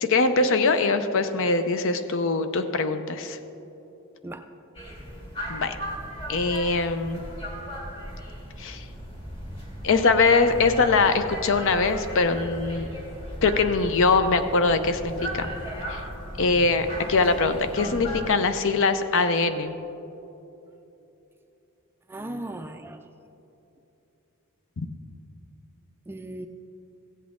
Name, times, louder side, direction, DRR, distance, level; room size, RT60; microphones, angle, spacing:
voice 1, 0.0-3.4 5.5-5.8 6.3-7.2 8.6-8.8 9.8-12.9 13.4-15.5 15.9-16.0 16.4-19.7 24.8-24.9, left 4 dB, 60° left, 10 dB, 0.6 m, -22 dB
sound 1, 4.7-18.3, equal, 25° left, 1.7 m, -36 dB
voice 2, 22.1-23.0 26.1-26.5, right 1 dB, 10° right, 6 dB, 0.3 m, -36 dB
16.0 x 8.2 x 3.7 m, 2.9 s
head